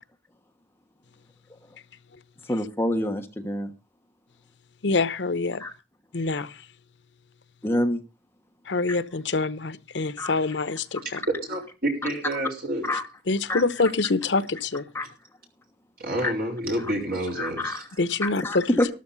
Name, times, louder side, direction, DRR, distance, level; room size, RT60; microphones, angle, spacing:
voice 1, 2.5-3.7 5.6-5.7 7.6-8.0 8.9-9.0 10.2-10.3 12.8-13.1 13.5-13.6 14.9-15.1 16.2-16.3 16.8-16.9 17.3-17.9 18.2-18.9, left 1 dB, 15° left, 1.2 m, -27 dB
voice 2, 4.8-5.6 6.1-6.6 8.7-11.2 13.3-14.8 18.0-18.6, left 3 dB, 80° left, 0.8 m, -25 dB
voice 3, 11.5-12.9 16.0-17.8, right 1 dB, 55° right, 5.0 m, -29 dB
13.0 x 12.5 x 4.0 m
head